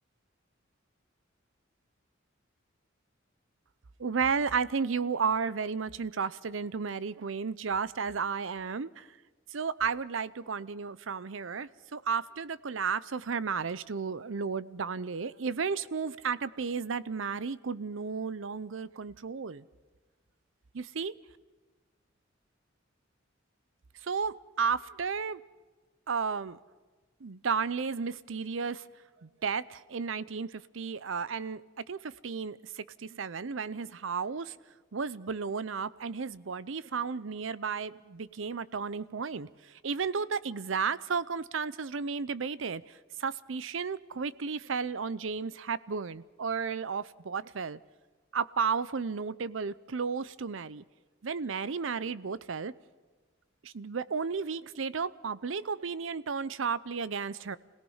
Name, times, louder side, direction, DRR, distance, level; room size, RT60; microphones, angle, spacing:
voice 1, 4.0-9.1 9.5-19.6 20.7-21.1 24.0-25.4 26.1-26.6 27.2-28.8 29.2-31.6 31.9-34.5 34.9-39.5 39.8-42.8 43.2-47.8 48.3-50.8 51.2-52.7 53.6-57.6, right 5 dB, 75° right, 17 dB, 0.7 m, -33 dB
27.0 x 18.0 x 5.6 m, 1.3 s
head